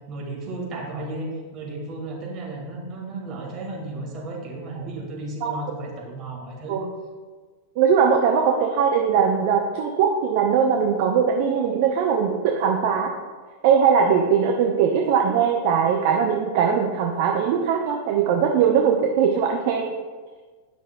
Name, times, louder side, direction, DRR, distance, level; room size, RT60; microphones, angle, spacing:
voice 1, 0.1-6.8, right 2 dB, 35° right, -2 dB, 1.7 m, -34 dB
voice 2, 7.8-13.1 13.6-19.9, right 7 dB, 50° right, 2 dB, 0.6 m, -20 dB
9.4 x 5.9 x 2.3 m, 1.4 s
figure-of-eight pair, 90°, 0 cm